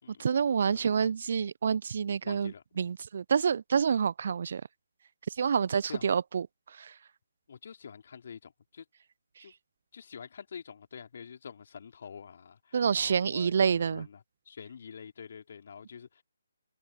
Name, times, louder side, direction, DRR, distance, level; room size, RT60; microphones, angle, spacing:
voice 1, 0.1-4.6 5.3-6.9 9.4-9.5 12.7-14.1, right 6 dB, 45° right, 0.8 m, -28 dB
voice 2, 0.6-1.1 2.2-2.6 5.9-6.1 7.5-8.9 9.4-9.5 9.9-16.2, left 6 dB, 45° left, 3.7 m, -47 dB
figure-of-eight pair, 145°, 0 cm